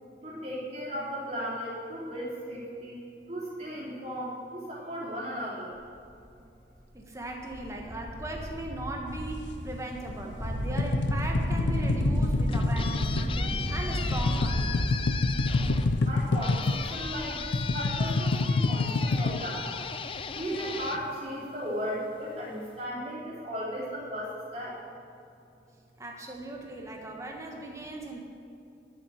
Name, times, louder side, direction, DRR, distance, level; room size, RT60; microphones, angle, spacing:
voice 1, 0.2-3.0 3.3-5.7 16.1-19.6 20.3-24.8, equal, 40° right, -6 dB, 3.4 m, -36 dB
sound 1, 6.0-6.1 6.8-6.9 7.2-18.2, equal, 65° left, 2.7 m, -32 dB
voice 2, 6.9-14.9 26.0-28.2, right 1 dB, 15° right, 0 dB, 1.4 m, -38 dB
sound 2, 9.1-10.3 10.6-16.9 17.2-20.3, left 3 dB, 90° left, 0.5 m, -28 dB
sound 3, 12.2-21.9, left 6 dB, 30° left, 0.4 m, -38 dB
11.5 x 8.0 x 6.5 m, 2.6 s
head